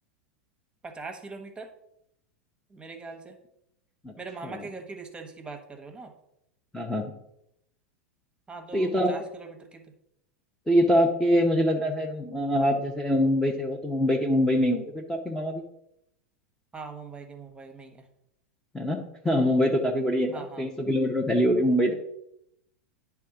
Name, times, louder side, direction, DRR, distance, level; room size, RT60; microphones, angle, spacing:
voice 1, 0.8-1.7 2.7-3.4 4.2-6.1 8.5-9.9 16.7-18.1 20.3-20.7, right 4 dB, 15° right, 5 dB, 1.2 m, -41 dB
voice 2, 6.7-7.2 8.7-9.2 10.7-15.7 18.7-22.0, equal, 5° left, 0 dB, 0.9 m, -24 dB
9.9 x 3.5 x 4.9 m, 0.78 s
hypercardioid pair, 90°, 7 cm